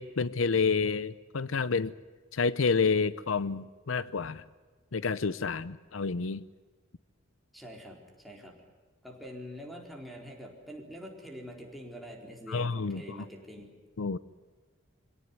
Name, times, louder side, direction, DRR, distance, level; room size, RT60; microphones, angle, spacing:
voice 1, 0.0-1.9 2.3-4.4 4.9-6.4 12.5-13.2 14.0-14.2, left 5 dB, 80° left, 17 dB, 0.6 m, -29 dB
voice 2, 7.5-8.6 9.0-13.7, equal, ahead, 1 dB, 4.2 m, -45 dB
24.0 x 17.5 x 9.6 m, 1.4 s
head